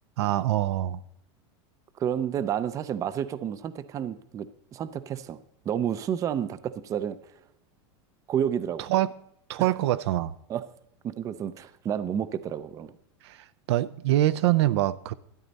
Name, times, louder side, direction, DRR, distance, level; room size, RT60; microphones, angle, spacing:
voice 1, 0.2-1.0 8.9-9.1 9.5-10.4 13.2-15.1, right 14 dB, 75° right, 0.5 m, -24 dB
voice 2, 2.0-5.4 5.7-7.3 8.3-8.9 9.6-9.7 10.5-10.7 11.0-12.9, right 9 dB, 25° right, 0.4 m, -30 dB
12.5 x 9.8 x 4.0 m
supercardioid pair, 145°, 14 cm